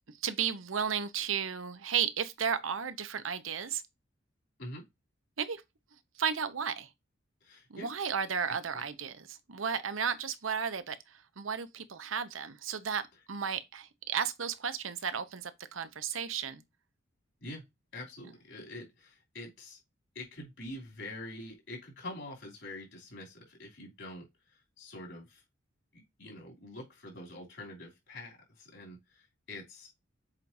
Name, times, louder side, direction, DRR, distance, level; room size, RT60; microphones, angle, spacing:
voice 1, 0.2-3.8 5.4-5.6 6.2-6.9 7.7-13.0 13.3-16.6, right 7 dB, 90° right, 0.9 m, -34 dB
voice 2, 7.4-7.9 8.7-8.8 17.4-17.6 17.9-19.8 20.1-25.4 25.9-29.9, left 1 dB, 70° left, 3.1 m, -45 dB
7.5 x 4.7 x 2.7 m
head